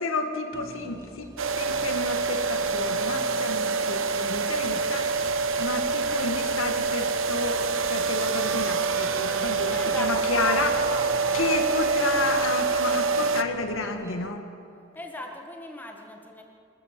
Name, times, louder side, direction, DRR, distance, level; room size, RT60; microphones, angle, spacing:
voice 1, 0.0-10.7 11.3-14.5, left 3 dB, 85° left, 5 dB, 2.0 m, -31 dB
sound 1, 0.5-14.3, right 1 dB, 15° right, 0.8 m, -47 dB
sound 2, 1.4-13.4, right 4 dB, 80° right, 0.7 m, -26 dB
sound 3, 4.2-11.4, equal, 50° right, 4.8 m, -49 dB
voice 2, 9.7-11.6 14.9-16.4, left 1 dB, 10° left, 2 dB, 1.8 m, -38 dB
26.5 x 13.5 x 7.7 m, 2.6 s
head